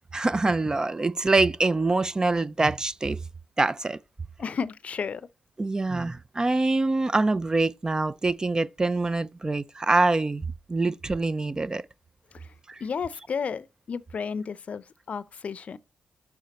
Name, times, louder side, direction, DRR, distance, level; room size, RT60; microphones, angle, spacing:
voice 1, 0.1-3.2 3.6-4.0 5.6-11.8 12.7-12.8, right 3 dB, 25° right, 0.4 m, -25 dB
voice 2, 4.4-5.3 12.3-12.5 12.8-15.8, left 6 dB, 55° left, 0.5 m, -32 dB
6.3 x 4.6 x 4.1 m
cardioid pair, 60°, 3 cm